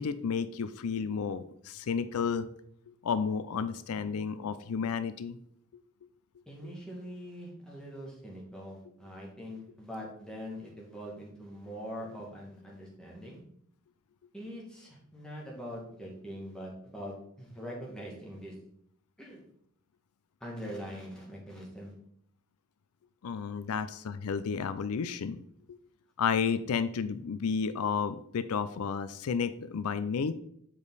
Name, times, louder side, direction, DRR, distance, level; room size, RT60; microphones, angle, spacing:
voice 1, 0.0-2.5 3.0-5.4 23.2-25.4 26.2-30.3, left 6 dB, 80° left, 13 dB, 0.4 m, -32 dB
voice 2, 6.5-13.4 14.3-18.5 19.2-19.4 20.4-21.9, equal, 5° left, -3 dB, 2.0 m, -43 dB
7.1 x 5.1 x 4.0 m, 0.68 s
head